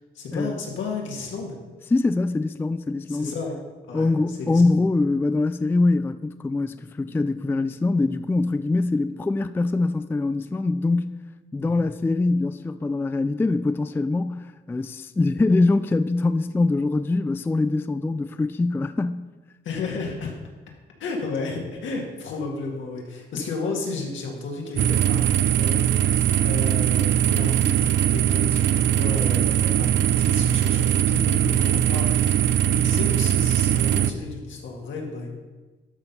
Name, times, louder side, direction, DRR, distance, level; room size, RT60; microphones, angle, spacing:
voice 1, 0.1-1.6 3.1-3.6 3.9-4.6 11.6-11.9 19.6-20.3 21.0-35.3, left 4 dB, 75° left, 2.2 m, -33 dB
voice 2, 1.9-3.3 3.9-11.2 11.5-19.3, left 3 dB, 10° left, 0.3 m, -23 dB
sound 1, 24.8-34.1, right 11 dB, 65° right, 0.5 m, -21 dB
12.0 x 4.4 x 5.5 m
cardioid pair, 90°, 20 cm